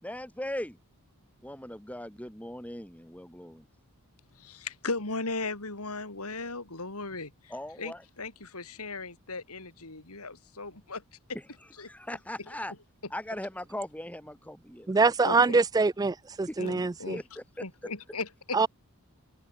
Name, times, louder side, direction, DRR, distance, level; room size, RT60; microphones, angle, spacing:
voice 1, 0.0-0.8 1.4-3.6 7.5-8.0 11.3-11.4 11.8-12.7 13.1-15.1 16.5-16.6 17.1-17.4, left 1 dB, 5° left, 4.6 m, -39 dB
voice 2, 4.4-7.5 7.8-11.0 11.8-11.9 15.2-15.6 16.6-17.2 17.6-18.6, left 3 dB, 85° left, 4.4 m, -37 dB
voice 3, 14.9-17.2 18.5-18.7, right 4 dB, 15° right, 0.3 m, -24 dB
head